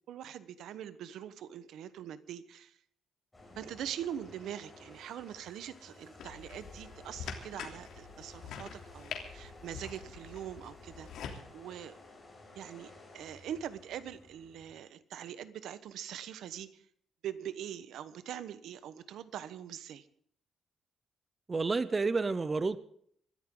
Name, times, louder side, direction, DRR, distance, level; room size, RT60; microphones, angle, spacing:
voice 1, 0.1-2.8 3.6-12.0 12.5-16.8 17.2-20.1, right 10 dB, 85° right, 13 dB, 1.1 m, -43 dB
sound 1, 3.3-14.7, left 2 dB, 15° left, 5.9 m, -55 dB
sound 2, 6.2-11.4, left 6 dB, 90° left, 3.1 m, -45 dB
voice 2, 21.5-22.8, right 4 dB, 20° right, 15 dB, 0.6 m, -30 dB
24.5 x 13.5 x 3.8 m, 0.62 s
cardioid pair, 170°, 0 cm